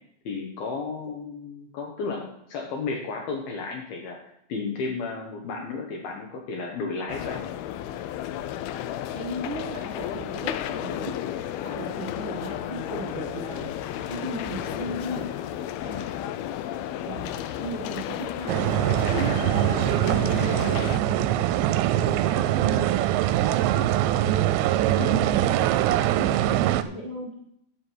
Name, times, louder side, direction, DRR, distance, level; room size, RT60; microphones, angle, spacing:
voice 1, 0.3-4.2 4.5-7.4 15.8-16.1 25.0-25.2, left 4 dB, 70° left, 0 dB, 2.7 m, -33 dB
sound 1, 7.1-21.0, left 11 dB, 85° left, 2.1 m, -33 dB
voice 2, 9.1-11.1 11.6-13.6 14.1-15.3 17.0-17.3 17.6-19.5 19.8-20.4 20.8-24.3 24.8-26.3 26.6-27.3, right 2 dB, 50° right, -4 dB, 1.4 m, -36 dB
sound 2, 9.5-16.1, right 1 dB, 5° left, 0.7 m, -49 dB
sound 3, 18.5-26.8, right 13 dB, 85° right, 2.8 m, -23 dB
10.0 x 7.3 x 6.1 m, 0.73 s
omnidirectional pair, 5.1 m